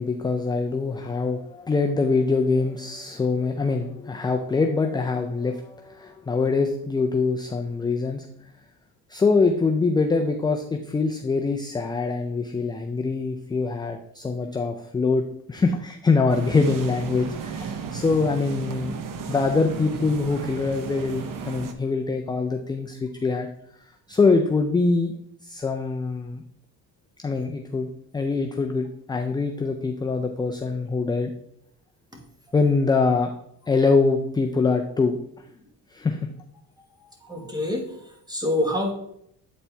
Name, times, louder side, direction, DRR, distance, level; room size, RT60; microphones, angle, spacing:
voice 1, 0.0-8.3 9.1-15.2 15.5-18.9 19.3-23.5 24.1-25.1 25.4-26.4 27.2-31.3 32.5-33.3 33.7-35.2 35.9-36.3, left 4 dB, 10° left, 4 dB, 0.3 m, -24 dB
sound 1, 16.3-21.7, right 6 dB, 50° right, 0.8 m, -34 dB
voice 2, 37.2-38.9, left 1 dB, 10° right, 2 dB, 1.4 m, -27 dB
8.4 x 4.3 x 3.4 m, 0.73 s
cardioid pair, 115°, 40 cm